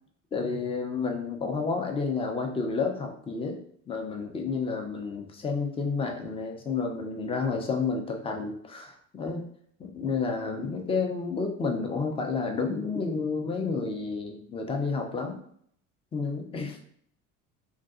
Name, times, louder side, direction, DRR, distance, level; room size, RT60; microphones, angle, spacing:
voice 1, 0.3-3.6 3.9-9.4 9.8-15.4 16.1-16.8, left 4 dB, 15° left, 3 dB, 0.4 m, -30 dB
2.5 x 2.3 x 2.3 m, 0.63 s
hypercardioid pair, 65°, 42 cm